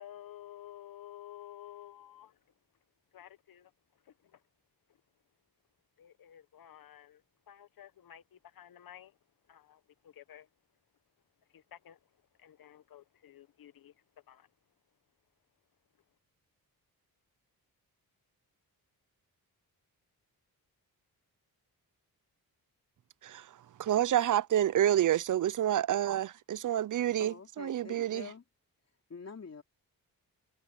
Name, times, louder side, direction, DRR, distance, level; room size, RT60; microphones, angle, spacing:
voice 1, 0.0-2.3 3.1-3.7 4.1-4.4 6.0-7.2 7.5-9.1 9.5-10.5 11.5-12.0 12.4-13.9 14.3-14.5, left 11 dB, 65° left, 1.0 m, -52 dB
voice 2, 23.8-28.3, right 11 dB, 55° right, 0.5 m, -28 dB
voice 3, 27.2-28.4 29.1-29.6, left 5 dB, 40° left, 3.3 m, -46 dB
wide cardioid pair, 115°, 37 cm